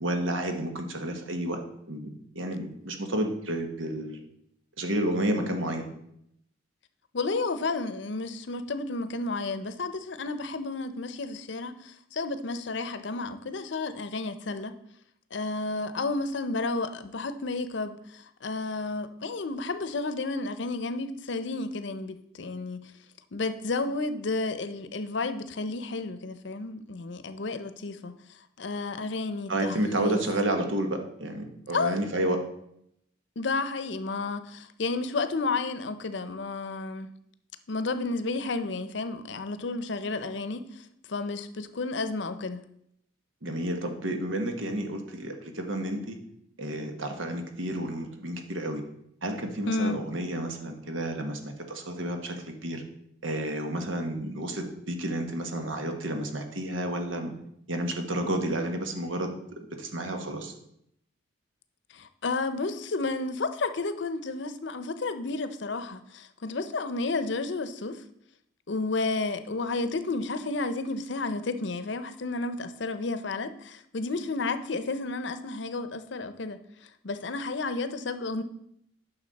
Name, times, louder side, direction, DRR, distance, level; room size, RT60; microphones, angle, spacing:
voice 1, 0.0-4.2 4.8-5.9 29.5-32.4 43.4-46.2 46.6-48.8 49.2-52.8 53.2-57.3 57.7-59.3 59.8-60.5, right 1 dB, 90° right, 5 dB, 1.3 m, -31 dB
voice 2, 7.1-14.7 15.3-22.9 23.3-30.2 31.7-31.9 33.4-37.1 37.7-42.6 49.7-50.0 61.9-68.0 68.7-78.4, left 3 dB, 70° left, 11 dB, 0.6 m, -32 dB
9.8 x 6.1 x 4.1 m, 0.75 s
head